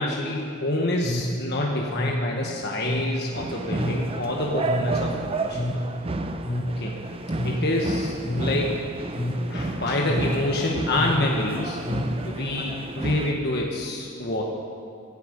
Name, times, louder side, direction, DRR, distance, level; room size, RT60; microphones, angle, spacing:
voice 1, 0.0-5.6 6.8-6.9 7.4-8.8 9.5-11.8 12.2-14.4, left 1 dB, 50° left, -1 dB, 1.3 m, -27 dB
sound 1, 1.0-12.6, left 1 dB, 20° left, 0.7 m, -30 dB
sound 2, 3.3-13.3, right 2 dB, 25° right, 0.7 m, -31 dB
17.5 x 12.0 x 5.2 m, 2.4 s
head